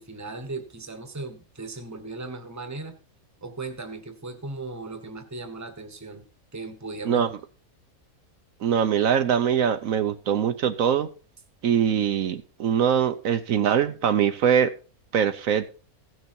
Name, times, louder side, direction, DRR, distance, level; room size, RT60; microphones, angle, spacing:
voice 1, 0.0-3.0 3.4-6.3 6.5-7.2, right 3 dB, 15° right, 8 dB, 1.1 m, -37 dB
voice 2, 8.6-11.1 11.6-14.7 15.1-15.8, right 8 dB, 70° right, 8 dB, 1.1 m, -22 dB
16.0 x 6.2 x 4.5 m, 0.36 s
omnidirectional pair, 1.5 m